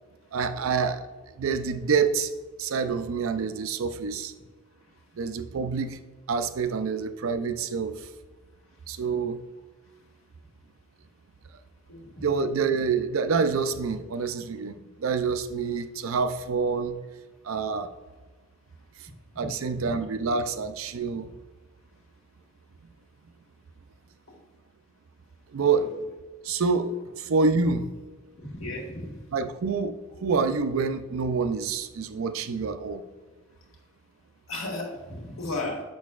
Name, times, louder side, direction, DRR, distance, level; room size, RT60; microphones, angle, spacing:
voice 1, 0.3-1.0 1.4-2.3 2.6-4.3 5.2-6.0 6.3-8.0 8.9-9.4 12.2-17.0 17.4-17.9 19.4-21.3 25.5-25.9 26.4-27.9 29.3-33.0, right 5 dB, 75° right, 11 dB, 0.5 m, -27 dB
voice 2, 11.9-12.3 19.8-19.9 25.7-25.9 28.4-29.1 34.5-35.8, left 2 dB, 75° left, 0 dB, 1.6 m, -35 dB
6.6 x 6.3 x 2.4 m, 1.3 s
head